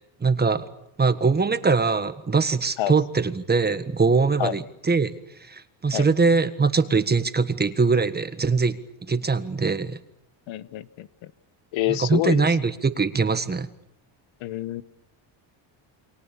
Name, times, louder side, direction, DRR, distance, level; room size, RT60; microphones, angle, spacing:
voice 1, 0.2-0.7 1.0-5.1 5.4-8.8 9.1-10.0 11.9-13.7, right 4 dB, 20° right, 11 dB, 1.5 m, -22 dB
voice 2, 10.5-11.3 11.7-12.5 14.4-14.8, left 14 dB, 70° left, 15 dB, 1.2 m, -27 dB
29.0 x 23.5 x 7.1 m, 0.82 s
cardioid pair, 125°, 48 cm